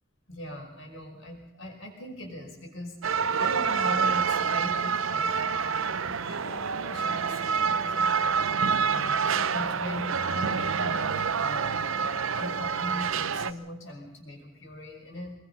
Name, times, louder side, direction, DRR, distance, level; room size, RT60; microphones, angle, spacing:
voice 1, 0.3-3.0 3.4-6.5 6.8-11.8 12.3-15.4, left 1 dB, 65° left, 2 dB, 5.7 m, -40 dB
sound 1, 3.0-13.5, right 6 dB, 70° right, 0.7 m, -27 dB
Wind instrument woodwind instrument, 6.4-13.2, equal, 40° left, 1.5 m, -45 dB
24.0 x 20.5 x 5.7 m, 0.85 s
head